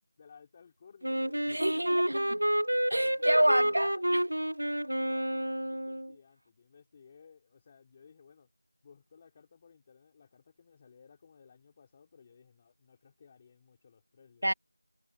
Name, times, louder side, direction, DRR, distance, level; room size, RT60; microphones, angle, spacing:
voice 1, 0.0-1.9 2.6-3.5 3.8-4.2 4.9-8.5 8.8-14.5, left 6 dB, 10° left, 3.8 m, -58 dB
Wind instrument woodwind instrument, 1.0-6.1, right 1 dB, 80° right, 1.2 m, -29 dB
voice 2, 1.5-2.3 2.9-3.9 14.4-14.5, right 1 dB, 60° right, 2.6 m, -27 dB
figure-of-eight pair, 180°, 0 cm